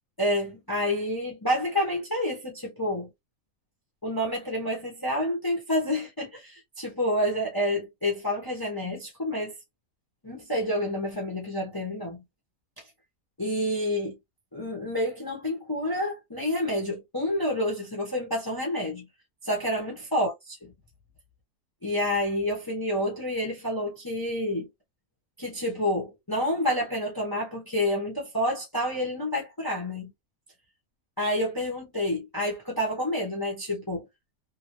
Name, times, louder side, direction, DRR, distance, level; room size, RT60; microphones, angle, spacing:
voice 1, 0.2-3.1 4.0-9.5 10.2-12.2 13.4-14.2 14.5-19.1 19.4-20.7 21.8-24.7 25.4-30.1 31.2-34.0, left 1 dB, 20° left, 0.8 m, -29 dB
2.9 x 2.6 x 3.0 m
omnidirectional pair, 1.5 m